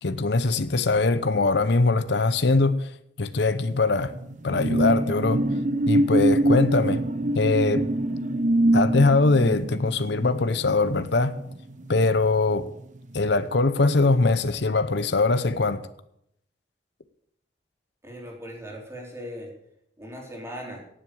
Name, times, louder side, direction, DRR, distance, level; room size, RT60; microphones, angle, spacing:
voice 1, 0.0-2.9 3.2-4.1 4.4-5.4 5.9-7.0 7.3-7.8 8.7-11.3 11.9-12.7 13.1-15.8, left 3 dB, 70° left, 11 dB, 0.8 m, -22 dB
sound 1, 3.6-12.6 13.0-13.2, right 1 dB, 45° right, 1.0 m, -25 dB
voice 2, 18.0-19.5 20.0-20.9, equal, 15° right, -1 dB, 4.2 m, -38 dB
17.0 x 7.7 x 7.1 m, 0.74 s
head